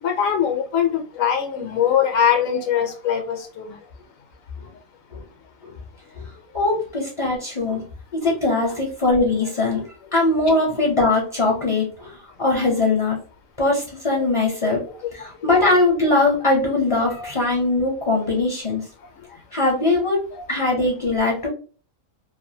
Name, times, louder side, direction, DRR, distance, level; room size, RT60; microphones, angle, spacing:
voice 1, 0.0-3.8 10.5-10.6 14.3-14.4 14.7-15.1 15.4-15.5 17.2-17.3 20.3-20.4, left 8 dB, 75° left, 4 dB, 0.9 m, -22 dB
voice 2, 6.5-7.8 8.1-9.8 10.1-13.2 13.6-14.8 15.1-18.8 19.5-20.2 20.5-21.5, left 2 dB, 35° left, -2 dB, 0.5 m, -21 dB
2.6 x 2.1 x 2.6 m, 0.39 s
omnidirectional pair, 1.4 m